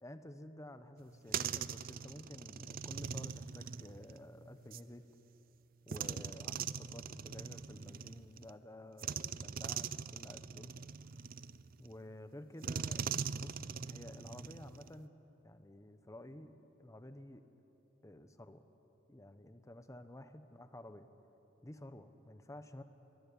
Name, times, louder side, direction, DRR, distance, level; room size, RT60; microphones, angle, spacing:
voice 1, 0.0-5.1 5.9-10.7 11.8-15.2 15.4-17.4 18.0-18.6 19.1-21.1 21.6-22.8, left 1 dB, 15° left, 9 dB, 1.0 m, -52 dB
sound 1, 1.0-4.9 5.9-8.5 9.0-11.9 12.6-15.0, right 7 dB, 50° right, 0.5 m, -42 dB
23.0 x 16.5 x 10.0 m, 2.9 s
head